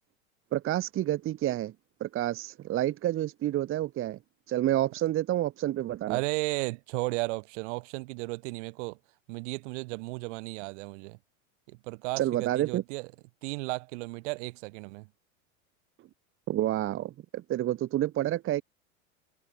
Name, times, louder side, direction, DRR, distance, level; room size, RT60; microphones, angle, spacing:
voice 1, 0.5-1.7 2.0-4.2 4.5-6.2 12.2-12.8 16.5-18.6, right 13 dB, 30° right, 0.9 m, -29 dB
voice 2, 6.1-9.0 9.3-11.2 11.7-13.1 13.4-15.1, right 27 dB, 55° right, 1.5 m, -34 dB
hypercardioid pair, 90°, 41 cm